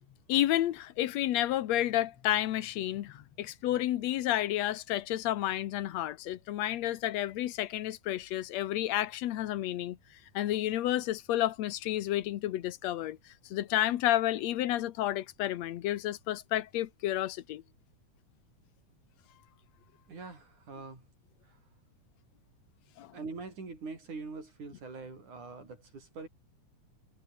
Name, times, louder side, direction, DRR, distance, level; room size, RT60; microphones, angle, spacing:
voice 1, 0.3-10.0 10.3-13.2 13.5-17.6 23.0-23.1, left 13 dB, 65° left, 2.0 m, -31 dB
voice 2, 20.1-21.1 21.4-21.6 23.1-26.3, right 4 dB, 70° right, 7.9 m, -43 dB
omnidirectional pair, 3.6 m